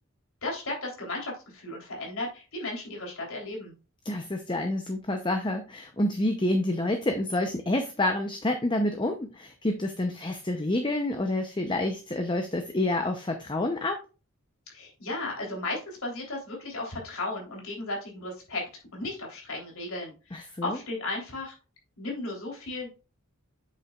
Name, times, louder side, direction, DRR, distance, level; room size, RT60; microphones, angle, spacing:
voice 1, 0.4-3.7 14.7-21.5 22.0-22.9, left 2 dB, 80° left, -1 dB, 3.5 m, -35 dB
voice 2, 4.0-14.0 20.3-20.8, left 1 dB, 20° left, 5 dB, 0.7 m, -28 dB
8.2 x 7.1 x 2.4 m, 0.31 s
head